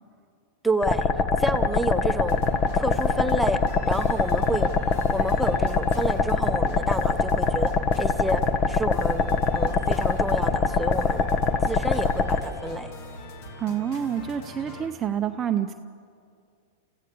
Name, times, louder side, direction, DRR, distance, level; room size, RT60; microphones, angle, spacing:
voice 1, 0.6-1.1 1.4-2.4 2.7-3.6 3.8-7.7 8.0-8.4 8.7-11.2 11.7-12.9, right 1 dB, 5° right, 6 dB, 1.1 m, -29 dB
sound 1, 0.8-12.4, left 4 dB, 35° left, 1.4 m, -23 dB
sound 2, 2.3-14.9, left 2 dB, 55° left, 2.9 m, -43 dB
voice 2, 13.6-15.7, right 9 dB, 30° right, 6 dB, 0.7 m, -28 dB
29.5 x 15.0 x 7.0 m, 2.3 s
hypercardioid pair, 105°, 0 cm